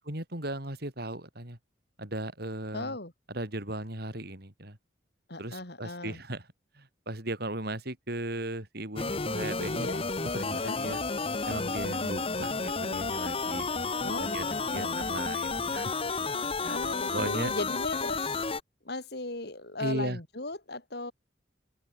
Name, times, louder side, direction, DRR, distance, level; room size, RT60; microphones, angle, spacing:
voice 1, 0.0-1.6 2.0-3.0 3.3-4.8 5.4-6.4 6.8-9.9 10.3-11.0 11.5-13.7 14.2-16.0 16.6-17.5 19.8-20.2, right 1 dB, 60° right, 6.1 m, -37 dB
voice 2, 2.7-3.1 5.3-6.2 9.7-10.0 10.5-10.8 14.0-15.1 16.7-18.3 18.8-21.1, left 2 dB, 60° left, 5.1 m, -37 dB
sound 1, 9.0-18.6, left 4 dB, 30° left, 1.3 m, -31 dB
open air
head